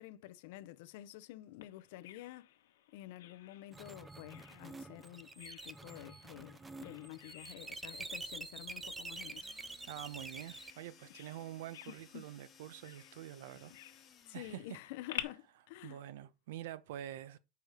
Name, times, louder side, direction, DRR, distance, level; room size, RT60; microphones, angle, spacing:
voice 1, 0.0-2.5 2.9-9.5 11.9-12.2 14.3-16.0, left 16 dB, 55° left, 0.6 m, -50 dB
Bird vocalization bird call bird song, 1.6-15.2, left 12 dB, 85° left, 1.3 m, -52 dB
sound 1, 3.7-10.7, right 3 dB, 5° right, 0.4 m, -47 dB
sending machine, 9.1-15.0, left 8 dB, 20° left, 1.0 m, -62 dB
voice 2, 9.9-13.7 14.3-14.6 15.8-17.4, right 12 dB, 65° right, 0.8 m, -46 dB
7.0 x 4.9 x 4.8 m
supercardioid pair, 175°, 0 cm